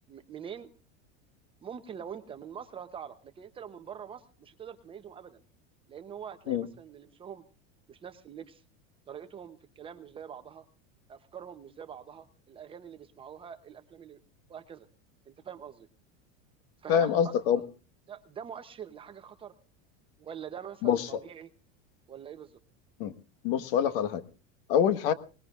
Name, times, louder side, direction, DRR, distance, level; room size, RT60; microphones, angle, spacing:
voice 1, 0.1-0.7 1.6-5.4 5.9-7.4 7.9-8.6 9.1-10.6 11.1-14.2 14.5-14.9 15.3-15.9 16.8-17.7 18.1-19.5 20.2-21.5 22.1-22.6, right 8 dB, 15° right, 9 dB, 0.7 m, -44 dB
voice 2, 16.9-17.6 20.8-21.1 23.0-23.1 23.4-24.2 24.7-25.1, left 8 dB, 55° left, 13 dB, 1.4 m, -25 dB
24.0 x 20.0 x 2.4 m, 0.36 s
supercardioid pair, 180°, 34 cm